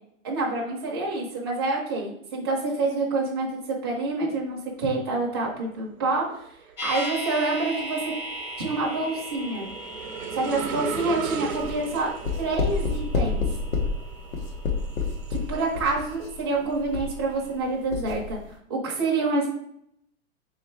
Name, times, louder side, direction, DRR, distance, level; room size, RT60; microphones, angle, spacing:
voice 1, 0.2-3.5 3.8-6.2 6.8-8.0 8.6-9.7 10.3-12.1 12.4-13.4 15.3-18.4 18.7-19.5, right 3 dB, 20° right, -3 dB, 0.5 m, -27 dB
sound 1, 4.0-4.4 4.8-16.1 16.5-18.2, right 6 dB, 75° right, 0.8 m, -38 dB
sound 2, 6.8-16.8 17.1-17.2, equal, 40° left, 0.7 m, -39 dB
sound 3, 11.5-17.6 17.9-18.3, left 4 dB, 75° left, 1.1 m, -29 dB
3.5 x 3.2 x 4.6 m, 0.72 s
hypercardioid pair, 175°, 41 cm